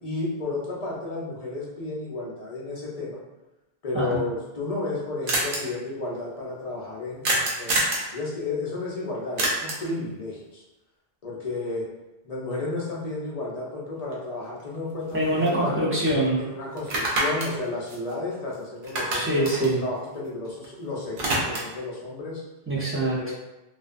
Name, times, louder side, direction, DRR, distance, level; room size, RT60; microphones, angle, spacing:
voice 1, 0.0-3.2 3.8-7.8 8.1-10.6 11.2-11.9 12.2-15.8 16.4-22.4 23.2-23.3, left 2 dB, 45° left, -4 dB, 0.6 m, -32 dB
sound 1, 4.3-4.4 4.6-4.7 4.9-5.0 5.3-5.6 7.2-8.1 9.4-9.9 14.1-14.2 14.6-15.8 16.1-16.2 16.8-18.5 18.8-20.7 20.9-21.8, right 1 dB, 60° right, 0.7 m, -27 dB
voice 2, 15.1-16.4 19.1-19.8 22.7-23.3, right 1 dB, 15° right, -9 dB, 0.5 m, -24 dB
2.4 x 2.1 x 2.4 m, 0.99 s
omnidirectional pair, 1.1 m